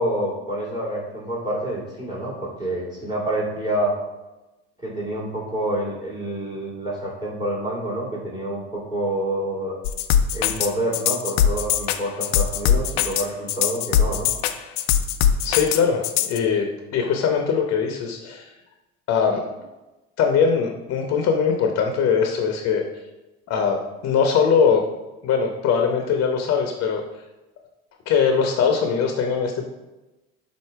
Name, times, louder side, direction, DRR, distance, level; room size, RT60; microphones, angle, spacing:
voice 1, 0.0-3.9 4.8-9.7 10.3-14.3, right 1 dB, 15° right, -4 dB, 2.2 m, -27 dB
sound 1, 9.8-16.4, left 9 dB, 85° left, 0.5 m, -21 dB
voice 2, 15.4-18.5 19.1-19.4 20.2-22.8 23.5-23.8 24.0-24.8 25.2-27.0 28.1-29.7, left 6 dB, 50° left, 3 dB, 0.9 m, -21 dB
7.8 x 2.7 x 4.6 m, 1.1 s
supercardioid pair, 90°, 31 cm